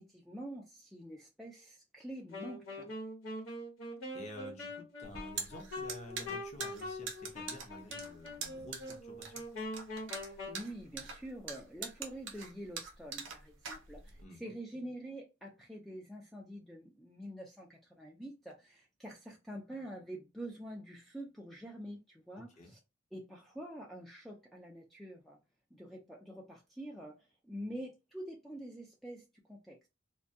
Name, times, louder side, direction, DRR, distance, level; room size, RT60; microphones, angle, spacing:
voice 1, 0.0-2.9 10.2-22.5 23.1-25.4 25.7-29.9, right 1 dB, ahead, 0.3 m, -46 dB
Wind instrument woodwind instrument, 2.3-10.6, left 2 dB, 85° left, 1.0 m, -43 dB
voice 2, 4.1-9.4 14.2-14.5 22.4-22.7, left 1 dB, 35° left, 0.7 m, -51 dB
sound 1, 5.0-14.2, right 5 dB, 65° right, 0.6 m, -43 dB
2.2 x 2.2 x 2.6 m
head